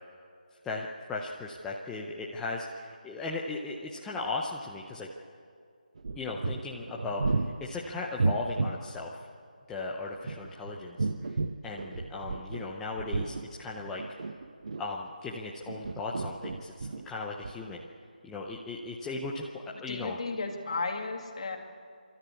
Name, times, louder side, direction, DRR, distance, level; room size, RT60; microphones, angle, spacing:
voice 1, 0.6-5.1 6.2-9.2 9.7-11.4 11.6-14.0 14.8-17.9 18.2-20.2, left 3 dB, 5° left, -3 dB, 0.6 m, -37 dB
sound 1, 6.0-8.8 10.1-12.7 13.0-15.1 15.6-17.1 17.4-17.5, right 3 dB, 50° right, 0.8 m, -33 dB
voice 2, 19.7-21.6, left 3 dB, 40° left, 3 dB, 2.3 m, -34 dB
26.5 x 13.0 x 8.4 m, 2.2 s
figure-of-eight pair, 170°, 5 cm